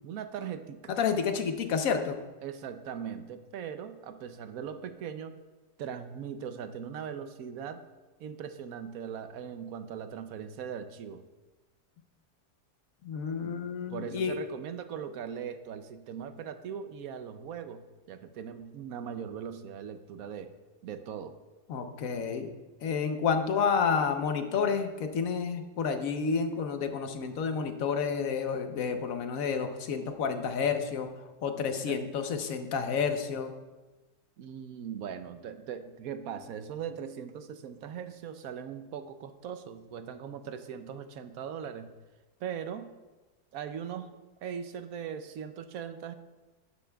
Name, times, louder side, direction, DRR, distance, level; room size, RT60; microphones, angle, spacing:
voice 1, 0.0-1.0 2.4-5.4 5.8-7.8 8.2-11.2 13.4-13.6 13.9-20.5 20.8-21.4 31.9-32.0 34.4-41.9 42.4-42.9 43.5-44.1 44.4-46.1, right 8 dB, 65° right, 9 dB, 1.0 m, -40 dB
voice 2, 0.9-2.2 13.0-14.4 21.7-22.5 22.8-31.1 31.4-33.5, left 6 dB, 60° left, 6 dB, 1.2 m, -30 dB
12.5 x 10.0 x 2.3 m, 1.1 s
omnidirectional pair, 1.7 m